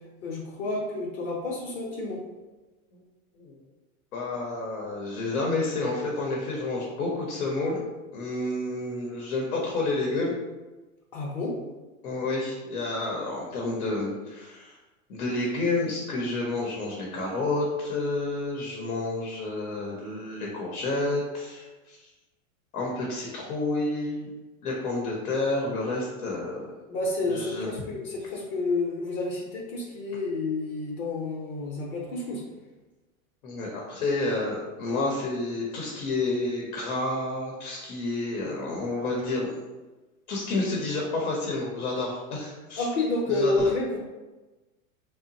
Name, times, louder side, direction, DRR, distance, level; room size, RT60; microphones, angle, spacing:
voice 1, 0.2-2.2 11.1-11.6 26.9-32.4 42.8-44.0, left 2 dB, 40° left, -3 dB, 0.6 m, -29 dB
voice 2, 4.1-7.8 8.1-10.3 12.0-14.8 15.1-22.0 22.7-24.3 24.6-26.7 27.3-27.7 33.4-39.6 40.3-42.9 43.3-43.7, left 2 dB, 90° left, -2 dB, 0.8 m, -30 dB
2.8 x 2.1 x 2.6 m, 1.2 s
hypercardioid pair, 115°, 43 cm